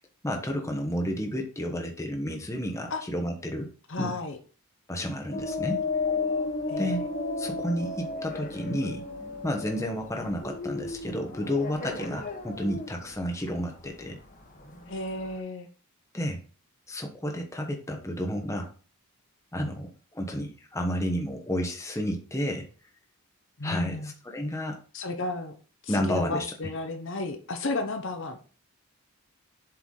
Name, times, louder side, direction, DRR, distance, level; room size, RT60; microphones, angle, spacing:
voice 1, 0.2-3.7 4.0-4.1 4.9-5.8 6.8-7.1 7.4-9.1 9.4-14.2 16.1-16.4 16.9-18.7 19.5-22.7 23.6-24.8 25.9-26.4, equal, 15° left, 3 dB, 1.0 m, -31 dB
voice 2, 3.9-4.4 6.7-6.9 14.9-15.7 19.6-19.7 23.6-24.1 24.9-25.5 25.8-28.4, left 2 dB, 55° left, 6 dB, 0.9 m, -33 dB
sound 1, 5.3-15.4, left 3 dB, 35° left, 1.3 m, -34 dB
7.4 x 4.6 x 3.8 m, 0.39 s
head